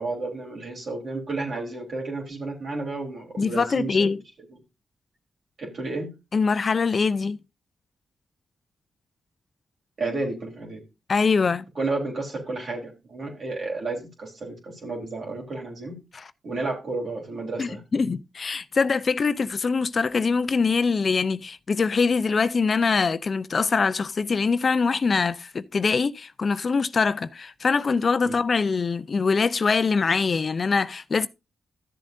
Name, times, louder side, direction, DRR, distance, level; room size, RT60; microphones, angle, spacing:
voice 1, 0.0-4.1 4.5-4.6 5.6-6.1 10.0-10.8 11.8-16.0 16.4-17.8 28.2-28.4, right 3 dB, 65° right, 3.7 m, -31 dB
voice 2, 3.4-4.2 6.3-7.4 11.1-11.6 17.6-31.3, left 4 dB, 50° left, 0.5 m, -23 dB
13.5 x 7.3 x 2.6 m
cardioid pair, 55°, 0 cm